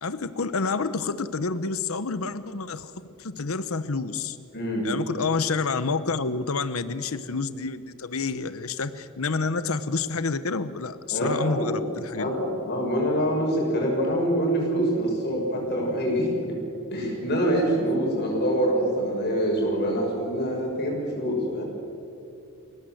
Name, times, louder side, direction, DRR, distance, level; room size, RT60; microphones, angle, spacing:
voice 1, 0.0-2.9 3.2-4.4 4.8-12.3, left 4 dB, 80° left, 13 dB, 0.9 m, -28 dB
voice 2, 4.5-4.9 11.1-11.8 12.2-16.6 16.9-21.6, equal, 50° left, -2 dB, 7.0 m, -25 dB
29.5 x 18.0 x 7.9 m, 2.7 s
head